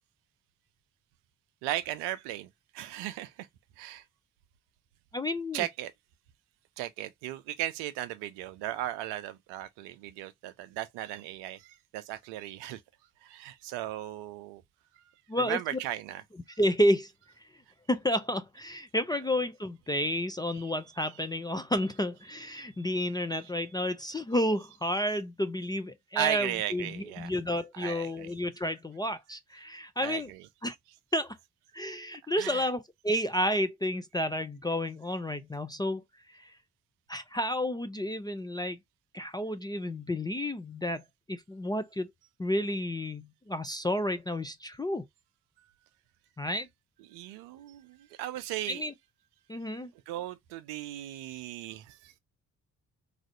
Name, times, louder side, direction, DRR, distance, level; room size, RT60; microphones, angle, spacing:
voice 1, 1.6-3.5 3.8-4.0 5.5-5.9 6.8-12.8 13.2-14.6 15.4-16.2 21.0-21.1 26.2-27.3 27.8-28.3 30.0-30.4 32.4-32.7 47.1-48.8 50.1-52.1, right 13 dB, 70° right, 0.6 m, -36 dB
voice 2, 5.1-5.7 15.3-15.6 16.6-17.1 17.9-30.3 30.6-30.8 31.1-31.4 31.7-36.0 36.3-36.5 37.1-38.8 39.1-41.0 41.3-42.1 42.4-45.1 46.4-46.7 48.7-48.9 49.5-49.9, equal, 10° left, 0.3 m, -31 dB
3.3 x 2.4 x 2.5 m
hypercardioid pair, 40°, 42 cm